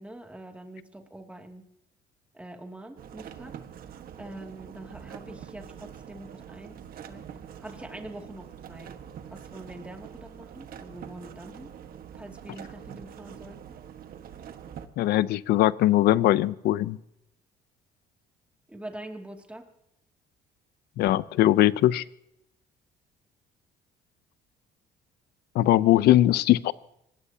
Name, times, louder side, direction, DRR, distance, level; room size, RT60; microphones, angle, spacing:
voice 1, 0.0-1.7 2.3-3.6 4.2-6.8 7.1-7.2 7.6-8.9 9.3-11.7 12.1-13.6 18.7-19.7 25.7-25.9, right 1 dB, 5° right, 3 dB, 2.4 m, -44 dB
sound 1, 3.0-14.9, right 9 dB, 60° right, 1.5 m, -44 dB
voice 2, 15.0-17.0 21.0-22.0 25.5-26.7, left 14 dB, 75° left, 18 dB, 0.7 m, -21 dB
25.0 x 20.0 x 2.9 m, 0.83 s
cardioid pair, 110°, 17 cm